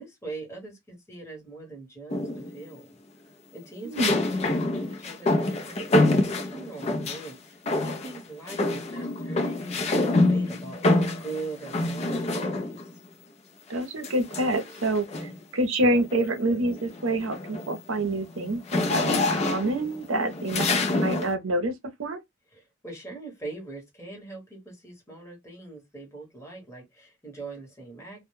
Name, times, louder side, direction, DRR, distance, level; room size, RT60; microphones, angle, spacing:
voice 1, 0.0-2.9 3.5-13.0 15.2-15.4 22.5-28.3, right 3 dB, 15° left, 1.0 m, -42 dB
sound 1, 2.1-2.6 4.0-7.3 7.7-8.2 8.5-12.9 14.0-15.4 15.9-16.2 16.6-21.3, left 2 dB, 30° left, 0.4 m, -26 dB
voice 2, 3.8-4.2 13.7-15.1 15.5-20.7 21.0-21.7 22.0-22.2, right 1 dB, 70° right, 0.6 m, -27 dB
2.1 x 2.1 x 3.0 m
head